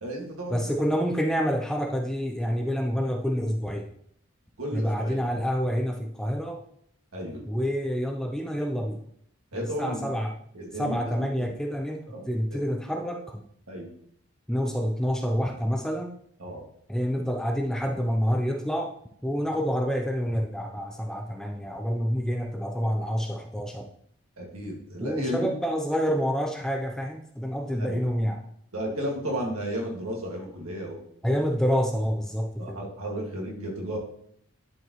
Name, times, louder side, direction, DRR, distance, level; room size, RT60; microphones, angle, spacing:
voice 1, 0.0-0.9 4.6-5.4 7.1-7.4 9.5-10.1 10.5-11.5 12.1-12.2 12.5-12.6 13.7-13.9 16.4-16.6 24.4-25.5 27.8-28.1 28.7-31.0 32.6-34.0, equal, 90° right, -1 dB, 2.0 m, -33 dB
voice 2, 0.5-3.9 4.7-6.6 7.4-9.0 9.5-10.3 10.8-13.4 14.5-16.1 16.9-18.9 19.2-23.9 25.0-28.4 31.2-32.8, equal, 5° left, 2 dB, 0.5 m, -28 dB
11.0 x 4.6 x 3.0 m, 0.67 s
head